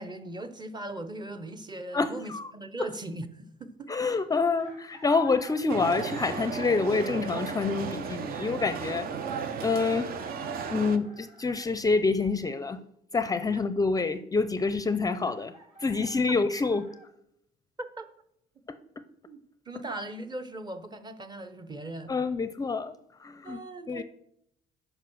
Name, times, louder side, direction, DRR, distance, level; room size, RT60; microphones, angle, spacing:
voice 1, 0.0-3.9 16.3-16.4 17.8-18.1 19.3-19.4 19.7-22.1 23.4-24.0, right 1 dB, 25° right, 0.9 m, -39 dB
voice 2, 1.9-2.5 3.9-9.1 9.6-10.1 10.7-12.8 13.1-15.5 15.8-16.9 22.1-22.9 23.2-23.6 23.9-24.0, left 4 dB, 20° left, 0.5 m, -27 dB
Chicken rooster, 4.6-6.5 8.2-8.3 9.8-11.7 15.2-17.1, right 1 dB, 40° right, 3.1 m, -52 dB
sound 1, 5.7-11.0, right 6 dB, 60° right, 0.8 m, -35 dB
9.3 x 5.4 x 6.2 m
cardioid pair, 110°, 17 cm